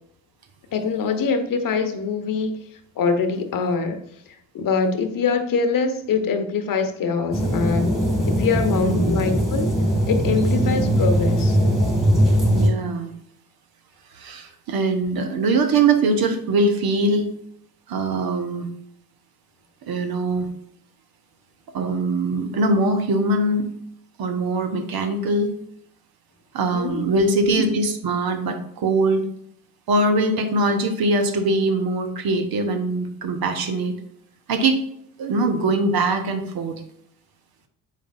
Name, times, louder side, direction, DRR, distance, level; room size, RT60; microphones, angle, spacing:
voice 1, 0.7-2.5 3.0-4.0 4.5-8.0 8.3-9.7 10.1-11.6 26.7-27.3, left 5 dB, 45° left, 8 dB, 1.0 m, -24 dB
sound 1, 7.3-12.7, equal, ahead, 2.6 m, -20 dB
voice 2, 8.8-9.3 12.5-13.1 14.1-17.3 17.9-18.7 19.8-20.5 21.7-23.7 24.2-25.5 26.5-29.2 29.9-33.9 34.5-34.8 35.2-36.8, right 2 dB, 55° right, 7 dB, 1.0 m, -22 dB
7.4 x 5.1 x 2.6 m, 0.71 s
hypercardioid pair, 55°, 45 cm